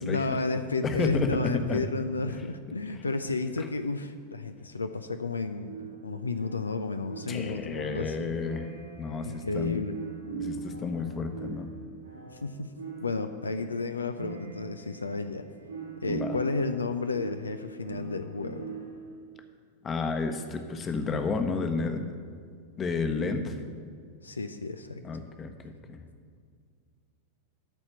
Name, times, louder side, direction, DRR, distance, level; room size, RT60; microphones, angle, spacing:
voice 1, 0.0-5.8 6.0-8.4 9.2-10.0 12.3-12.7 13.0-15.5 16.0-18.7 24.2-25.0, left 3 dB, 75° left, 9 dB, 0.4 m, -32 dB
voice 2, 0.8-1.3 1.5-1.8 2.9-3.0 7.3-8.7 9.0-9.8 10.3-11.7 16.1-16.4 19.8-22.0 22.8-23.6 25.0-26.0, left 4 dB, 25° left, 7 dB, 1.0 m, -31 dB
sound 1, 5.6-19.2, right 5 dB, 75° right, 1.7 m, -42 dB
12.5 x 4.3 x 7.8 m, 2.1 s
figure-of-eight pair, 90°, 0 cm